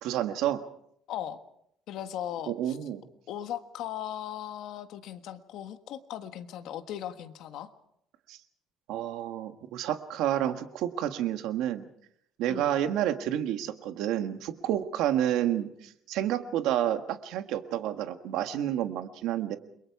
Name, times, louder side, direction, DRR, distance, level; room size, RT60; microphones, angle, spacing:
voice 1, 0.0-0.6 2.5-3.0 8.3-8.4 8.9-11.8 12.4-19.6, right 11 dB, 80° right, 8 dB, 1.6 m, -29 dB
voice 2, 1.1-1.4 1.9-2.8 3.3-7.7 12.5-12.7, left 11 dB, 65° left, 8 dB, 1.5 m, -38 dB
29.5 x 22.5 x 4.7 m, 0.72 s
cardioid pair, 170°, 0 cm